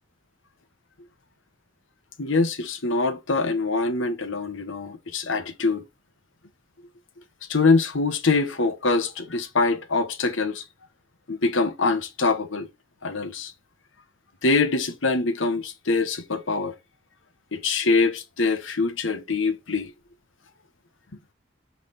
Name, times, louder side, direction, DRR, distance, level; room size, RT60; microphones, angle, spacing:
voice 1, 2.2-5.8 7.5-10.6 11.3-12.7 13.0-13.5 14.4-16.7 17.5-19.9, left 3 dB, 90° left, 1.1 m, -24 dB
5.8 x 4.1 x 5.1 m
head